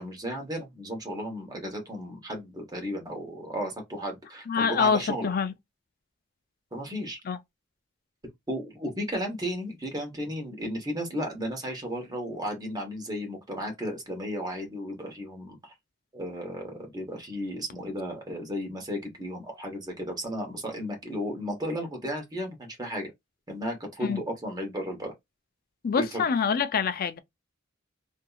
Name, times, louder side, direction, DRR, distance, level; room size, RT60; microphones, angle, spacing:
voice 1, 0.0-5.3 6.7-7.2 8.5-15.7 16.1-23.1 23.5-25.1 25.9-26.2, equal, 20° right, 1.1 m, -34 dB
voice 2, 4.5-5.5 7.3-7.4 24.0-24.2 25.8-27.2, left 6 dB, 50° left, 0.4 m, -25 dB
2.8 x 2.6 x 2.3 m
head